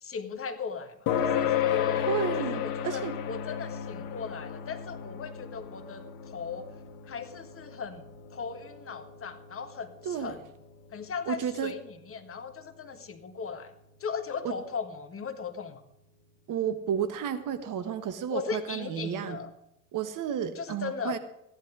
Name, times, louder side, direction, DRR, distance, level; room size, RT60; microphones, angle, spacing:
voice 1, 0.0-2.0 2.5-6.7 7.1-8.0 8.3-10.4 10.9-13.7 14.0-15.8 18.3-19.5 20.5-21.2, left 5 dB, 30° left, 7 dB, 1.6 m, -37 dB
sound 1, 1.1-16.0, left 9 dB, 50° left, 1.6 m, -35 dB
voice 2, 1.9-3.2 10.0-10.4 11.3-11.7 14.4-14.5 16.5-19.4 19.9-21.2, right 8 dB, 45° right, 10 dB, 1.4 m, -32 dB
15.0 x 11.0 x 4.9 m, 0.82 s
hypercardioid pair, 75°, 43 cm